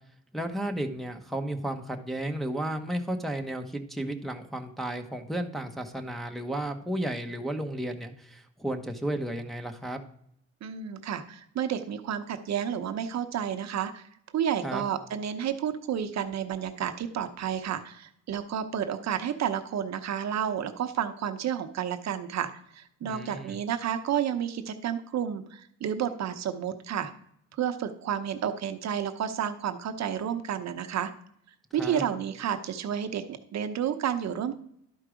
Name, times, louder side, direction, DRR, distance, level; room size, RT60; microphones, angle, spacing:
voice 1, 0.3-10.0 14.6-14.8 23.0-23.6 31.8-32.0, right 1 dB, ahead, 2 dB, 0.9 m, -33 dB
voice 2, 10.6-27.1 27.5-31.1 31.7-34.6, right 9 dB, 60° right, 8 dB, 0.8 m, -31 dB
11.5 x 4.6 x 5.0 m, 0.72 s
cardioid pair, 90°, 30 cm